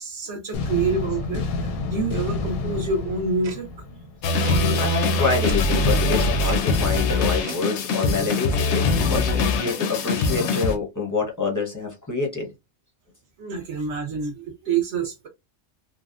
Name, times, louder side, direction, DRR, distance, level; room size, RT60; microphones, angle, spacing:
voice 1, 0.0-3.9 4.5-4.6 13.4-15.3, right 4 dB, 60° right, 1.0 m, -27 dB
sound 1, 0.5-4.5, left 3 dB, 85° left, 1.0 m, -29 dB
Tick-tock, 3.4-3.6 4.4-4.6 5.4-5.6 6.4-6.6 7.4-7.6, right 6 dB, 80° right, 1.2 m, -38 dB
sound 2, 4.2-10.8, left 3 dB, 65° left, 0.7 m, -22 dB
voice 2, 4.5-12.5, left 4 dB, 20° left, 0.5 m, -27 dB
3.3 x 2.1 x 2.4 m
omnidirectional pair, 1.5 m